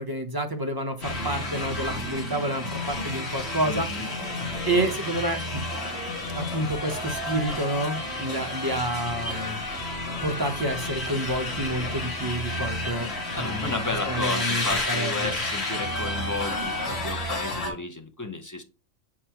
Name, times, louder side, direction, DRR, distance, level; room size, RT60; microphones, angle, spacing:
voice 1, 0.0-3.9 4.7-5.6 6.3-9.6 10.2-13.1 13.4-15.3, right 1 dB, 25° right, 0.6 m, -29 dB
sound 1, 1.0-17.7, left 1 dB, 55° left, 2.2 m, -31 dB
voice 2, 3.6-4.1 13.3-18.6, left 3 dB, 20° left, 0.5 m, -33 dB
7.3 x 4.5 x 2.9 m
omnidirectional pair, 1.3 m